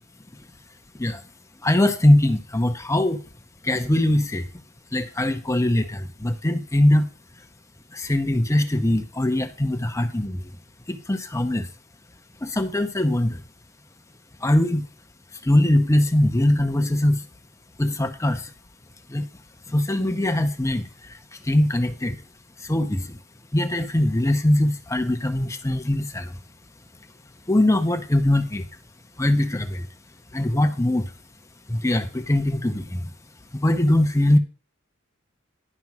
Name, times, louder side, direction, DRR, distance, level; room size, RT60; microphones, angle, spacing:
voice 1, 1.6-3.2 3.6-4.5 4.9-7.1 7.9-10.4 10.9-11.7 12.4-13.4 14.4-14.8 15.4-17.2 17.8-18.5 19.1-19.3 19.7-21.2 21.4-22.2 22.6-23.2 23.5-26.4 27.5-28.7 29.2-29.9 30.3-31.1 31.7-33.1 33.6-34.4, left 1 dB, 15° left, 0.7 m, -21 dB
11.0 x 5.2 x 5.9 m
head